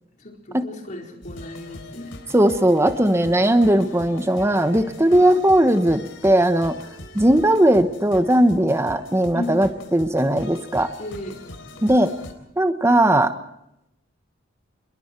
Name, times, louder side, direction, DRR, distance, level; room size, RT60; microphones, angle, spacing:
voice 1, 0.2-2.2 5.1-5.3 9.3-9.7 11.0-11.4, left 1 dB, 40° left, 1 dB, 4.4 m, -34 dB
sound 1, 1.2-12.3, left 2 dB, 80° left, 3.8 m, -41 dB
voice 2, 2.3-6.8 7.1-10.9 11.8-12.1 12.6-13.3, right 1 dB, 15° right, 9 dB, 1.1 m, -18 dB
28.5 x 22.0 x 4.5 m, 0.84 s
head